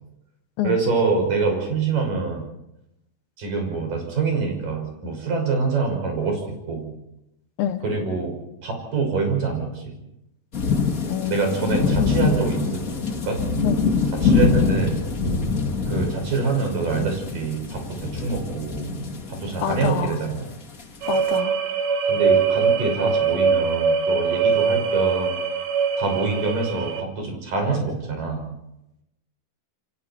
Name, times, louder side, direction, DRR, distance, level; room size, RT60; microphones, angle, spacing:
voice 1, 0.6-2.5 3.4-6.9 7.8-8.4 8.6-9.9 11.3-12.8 13.2-13.4 14.2-15.0 15.9-18.9 19.3-20.5 22.1-25.4 26.0-28.5, right 4 dB, 65° right, 3 dB, 7.7 m, -25 dB
sound 1, 10.5-21.4, left 5 dB, 30° left, 1.8 m, -24 dB
voice 2, 11.1-12.2 13.6-13.8 19.6-20.2 21.1-21.6, left 10 dB, 80° left, 9 dB, 3.1 m, -27 dB
sound 2, 21.0-27.0, right 6 dB, 90° right, 3.6 m, -22 dB
29.5 x 23.5 x 4.5 m, 0.86 s
omnidirectional pair, 4.2 m